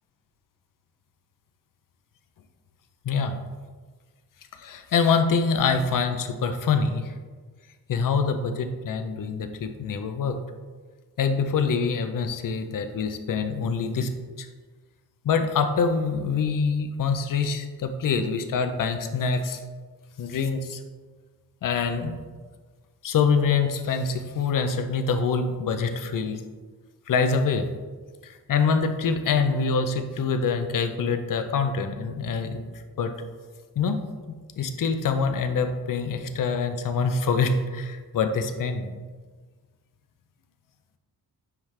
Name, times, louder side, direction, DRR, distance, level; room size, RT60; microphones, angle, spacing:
voice 1, 3.0-3.4 4.5-7.1 7.9-10.4 11.2-14.1 14.4-14.5 15.2-19.6 20.2-20.8 21.6-22.2 23.0-26.4 27.1-27.7 28.2-32.6 33.0-33.1 33.8-34.0 34.6-38.9, left 5 dB, 60° left, 7 dB, 0.6 m, -25 dB
9.3 x 3.3 x 3.3 m, 1.4 s
wide cardioid pair, 125°, 37 cm